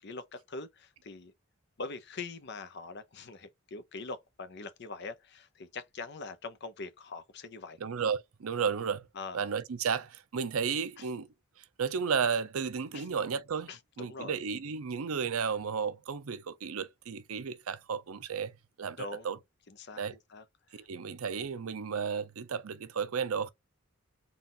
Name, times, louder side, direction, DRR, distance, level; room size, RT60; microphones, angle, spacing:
voice 1, 0.0-1.3 1.8-7.8 9.1-9.4 11.0-11.1 12.9-13.0 13.7-14.4 19.0-19.3 19.7-20.0 20.3-20.4 20.7-20.8, left 3 dB, 55° left, 0.7 m, -43 dB
voice 2, 7.8-9.0 9.3-11.3 11.6-19.4 20.0-20.1 20.7-23.5, right 6 dB, 85° right, 0.6 m, -33 dB
4.1 x 2.4 x 3.7 m
head